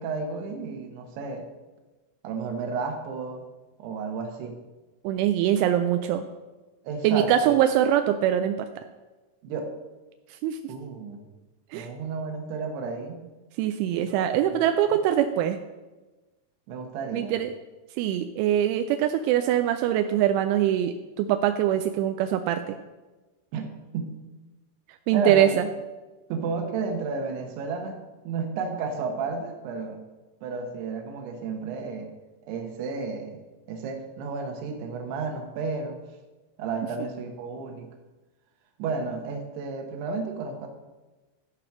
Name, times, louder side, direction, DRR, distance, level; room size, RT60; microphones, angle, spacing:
voice 1, 0.0-1.5 2.2-3.4 3.8-4.6 5.6-5.7 6.8-7.6 9.4-9.7 10.7-11.2 11.7-13.3 14.0-15.0 16.7-17.4 23.5-24.1 25.1-25.6 26.3-30.0 30.4-32.1 32.5-36.0 36.6-37.9 38.8-40.7, right 4 dB, 70° right, 3 dB, 3.0 m, -32 dB
voice 2, 5.0-6.2 7.0-8.6 10.3-10.6 11.7-11.9 13.6-15.6 17.1-17.5 18.0-22.8 25.1-25.7, right 11 dB, 85° right, 7 dB, 2.9 m, -23 dB
13.5 x 5.0 x 5.9 m, 1.2 s
omnidirectional pair, 5.4 m